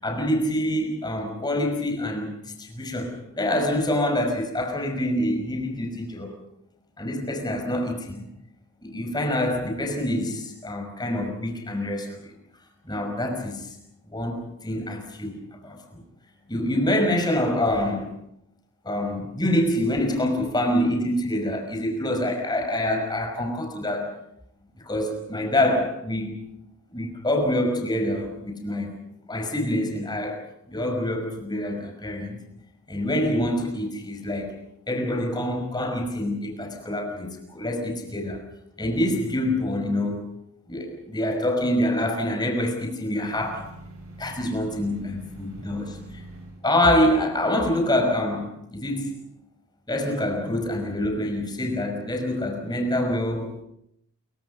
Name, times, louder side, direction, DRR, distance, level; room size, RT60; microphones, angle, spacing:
voice 1, 0.0-6.4 7.0-8.3 8.8-12.3 12.9-13.7 14.1-16.0 16.5-18.1 18.8-24.1 24.8-26.4 26.9-28.9 29.3-32.4 32.9-34.5 34.9-38.4 38.8-40.2 40.7-43.7 44.2-46.2 46.6-49.2 49.9-53.6, left 1 dB, 20° left, 4 dB, 5.6 m, -26 dB
sound 1, 43.0-46.6, right 2 dB, 80° right, 7.7 m, -44 dB
29.0 x 23.5 x 5.5 m, 0.77 s
head